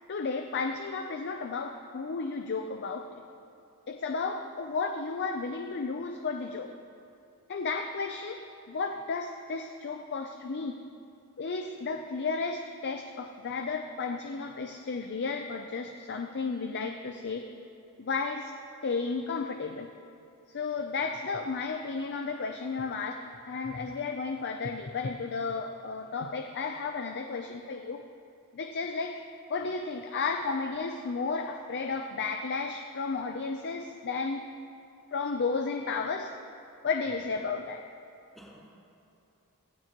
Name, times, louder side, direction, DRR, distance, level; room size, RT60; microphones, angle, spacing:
voice 1, 0.1-3.1 3.9-6.7 7.5-8.4 8.7-10.8 11.4-17.5 18.0-18.5 18.8-19.9 20.5-28.0 28.5-29.2 29.5-34.4 35.1-36.3 36.8-37.8, left 4 dB, 50° left, 5 dB, 0.6 m, -33 dB
voice 2, 38.3-38.8, equal, ahead, -5 dB, 2.6 m, -53 dB
18.0 x 15.0 x 3.0 m, 2.7 s
head